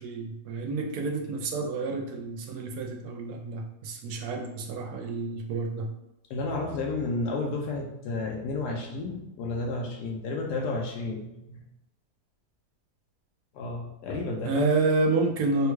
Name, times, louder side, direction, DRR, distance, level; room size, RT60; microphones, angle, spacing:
voice 1, 0.0-5.9 14.5-15.7, right 3 dB, 75° right, 2 dB, 1.0 m, -29 dB
voice 2, 6.3-11.6 13.5-14.6, left 3 dB, 80° left, 0 dB, 1.1 m, -32 dB
3.5 x 2.2 x 3.0 m, 0.90 s
omnidirectional pair, 1.7 m